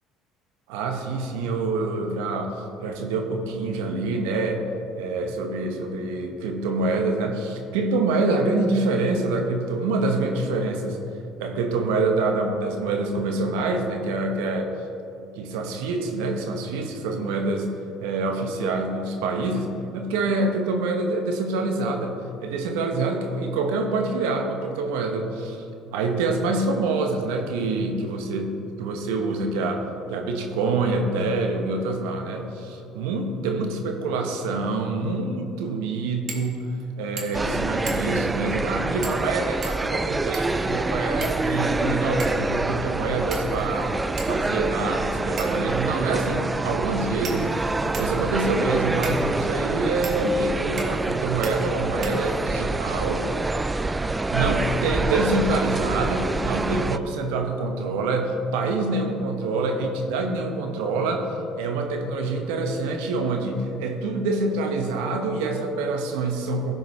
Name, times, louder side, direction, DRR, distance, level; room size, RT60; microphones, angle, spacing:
voice 1, 0.7-4.7 5.0-11.0 11.4-14.7 15.4-17.7 18.0-22.1 22.4-25.6 25.9-43.9 44.2-53.3 54.3-66.7, right 3 dB, 80° right, 3 dB, 0.9 m, -26 dB
sound 1, 36.3-36.5 36.8-36.9 37.2-37.5 37.9-38.2 39.0-39.3 39.6-40.6 41.2-41.8 42.2-42.5 43.3-43.7 44.2-44.3 45.4-45.7 46.5-46.6 47.2-48.2 49.0-49.2 50.0-50.2 50.8-51.1 51.4-51.5 52.0-52.6, right 4 dB, 50° right, 1.7 m, -37 dB
sound 2, 37.3-57.0, right 2 dB, 20° right, 0.3 m, -26 dB
15.5 x 5.1 x 3.2 m, 2.9 s
hypercardioid pair, 70°, 0 cm